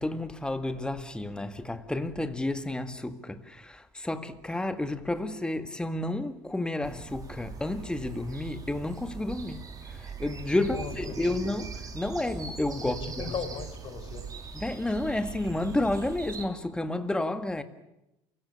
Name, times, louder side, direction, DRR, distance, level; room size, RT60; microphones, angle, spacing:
voice 1, 0.0-9.6 9.9-13.3 14.5-17.6, left 1 dB, 10° left, 1.9 m, -31 dB
sound 1, 6.8-16.5, right 5 dB, 35° right, 3.8 m, -41 dB
voice 2, 10.7-11.2 12.8-14.3, left 7 dB, 50° left, 5.1 m, -37 dB
29.0 x 17.0 x 8.8 m
supercardioid pair, 100°, 11 cm